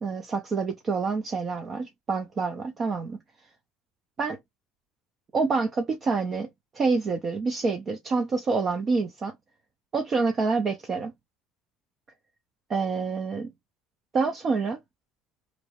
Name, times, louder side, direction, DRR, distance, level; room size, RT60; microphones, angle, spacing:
voice 1, 0.0-3.2 4.2-4.4 5.3-6.5 6.7-9.3 9.9-11.1 12.7-13.5 14.1-14.8, right 4 dB, 40° right, 0.5 m, -27 dB
2.9 x 2.1 x 2.9 m
supercardioid pair, 90°, 0 cm